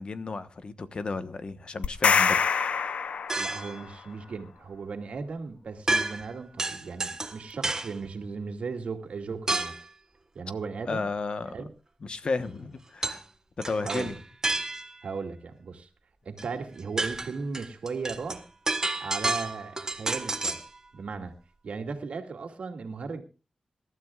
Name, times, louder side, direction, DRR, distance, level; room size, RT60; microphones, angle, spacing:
voice 1, 0.0-2.4 10.9-11.5 12.0-13.2 13.6-14.1, left 3 dB, 50° left, 1.1 m, -33 dB
sound 1, 1.8-3.8, left 6 dB, 80° left, 0.7 m, -25 dB
sound 2, 3.3-3.8 5.9-6.3 6.6-8.0 9.5-9.9 13.0-13.2 13.6-15.0 16.4-16.5 16.8-20.7, right 2 dB, 30° right, 1.4 m, -30 dB
voice 2, 3.4-9.8 10.3-11.1 11.5-11.7 13.8-14.1 15.0-15.9 16.2-18.4 19.0-20.6 20.9-21.3 21.6-23.2, right 4 dB, 75° right, 2.4 m, -36 dB
26.5 x 13.0 x 2.4 m
wide cardioid pair, 95°, 2 cm